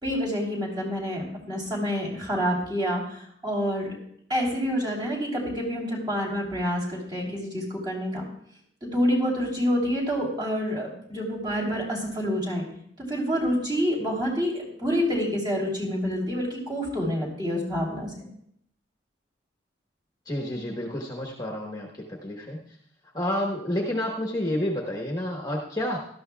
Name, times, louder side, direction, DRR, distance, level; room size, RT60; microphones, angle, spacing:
voice 1, 0.0-4.0 4.3-8.3 8.8-12.7 13.0-18.3, equal, 25° right, -3 dB, 3.1 m, -27 dB
voice 2, 20.3-22.6 23.1-26.0, left 1 dB, 20° left, -1 dB, 1.2 m, -29 dB
17.5 x 12.5 x 2.3 m, 0.68 s
head